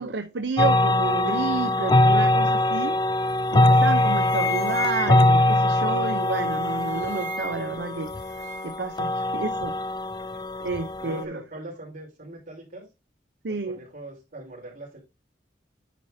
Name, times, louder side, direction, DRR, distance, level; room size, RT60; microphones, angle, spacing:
voice 1, 0.0-3.0 3.5-8.1 8.6-9.7 10.6-11.4 13.4-13.8, right 4 dB, 65° right, 0.6 m, -30 dB
sound 1, 0.6-11.2, left 1 dB, 25° left, 0.4 m, -22 dB
sound 2, 3.3-3.5 3.8-5.5 6.3-7.8 8.0-8.8, left 4 dB, 65° left, 2.3 m, -35 dB
voice 2, 11.0-12.9 13.5-15.0, right 1 dB, 50° right, 4.6 m, -41 dB
10.0 x 4.8 x 2.7 m
head